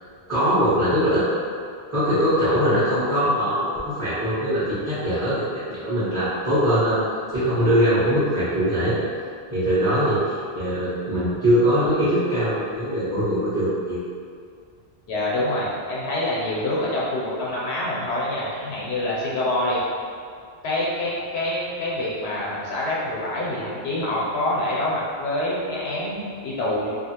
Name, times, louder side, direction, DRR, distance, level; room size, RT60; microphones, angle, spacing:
voice 1, 0.3-1.3 1.9-7.0 7.3-9.0 9.5-10.2 10.5-14.0, equal, 20° right, -16 dB, 0.8 m, -21 dB
voice 2, 15.1-19.8 20.6-26.9, left 1 dB, 85° left, -6 dB, 0.9 m, -26 dB
2.7 x 2.4 x 2.8 m, 2.2 s
omnidirectional pair, 1.0 m